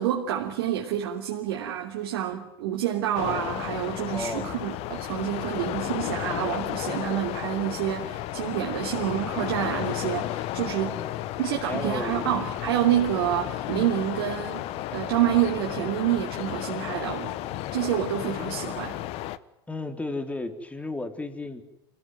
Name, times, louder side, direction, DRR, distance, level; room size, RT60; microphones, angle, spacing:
voice 1, 0.0-11.0 11.4-19.0, right 11 dB, 70° right, 0 dB, 3.2 m, -28 dB
sound 1, 3.1-19.4, left 14 dB, 50° left, 1.2 m, -33 dB
voice 2, 4.1-4.5 10.8-11.2 11.6-12.3 19.7-21.6, left 2 dB, 10° left, 7 dB, 3.7 m, -34 dB
26.0 x 16.5 x 9.5 m, 0.91 s
hypercardioid pair, 90°, 13 cm